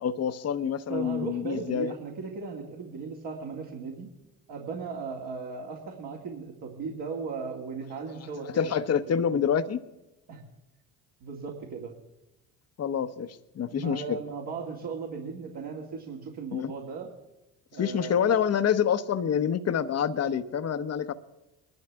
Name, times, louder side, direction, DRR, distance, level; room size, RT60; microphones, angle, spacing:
voice 1, 0.0-1.9 8.5-9.8 12.8-14.2 16.5-16.7 17.8-21.1, left 8 dB, 35° left, 11 dB, 1.0 m, -27 dB
voice 2, 0.9-4.1 4.5-8.7 9.1-9.2 10.3-10.4 11.2-12.0 13.7-17.1 17.7-18.3, right 5 dB, 60° right, -2 dB, 2.4 m, -37 dB
22.0 x 12.0 x 3.5 m, 0.97 s
hypercardioid pair, 65°, 43 cm